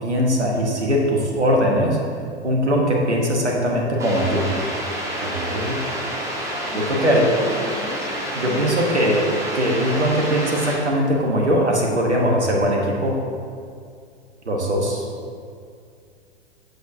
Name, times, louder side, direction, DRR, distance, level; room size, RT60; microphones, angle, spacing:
voice 1, 0.0-2.0 2.4-4.5 5.2-5.8 6.7-7.3 8.3-13.1 14.5-15.0, equal, 80° right, -1 dB, 1.1 m, -20 dB
sound 1, 4.0-10.8, equal, 10° right, 1.1 m, -29 dB
voice 2, 6.7-8.1 8.4-8.8, left 4 dB, 15° left, 2 dB, 0.5 m, -36 dB
8.1 x 6.5 x 2.7 m, 2.3 s
figure-of-eight pair, 95°, 34 cm